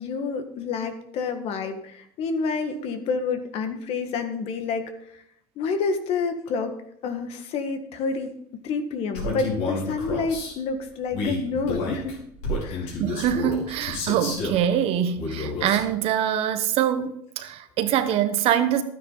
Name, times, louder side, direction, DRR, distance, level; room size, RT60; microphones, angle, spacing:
voice 1, 0.0-5.2 5.5-6.7 7.0-12.2 12.6-12.9, left 4 dB, 60° left, 1.7 m, -29 dB
Male speech man speaking, 9.1-10.5 11.1-14.6 15.2-15.9, left 2 dB, 75° left, 5.2 m, -30 dB
voice 2, 13.0-18.8, right 10 dB, 60° right, 1.2 m, -24 dB
12.5 x 9.6 x 4.0 m
supercardioid pair, 110°, 12 cm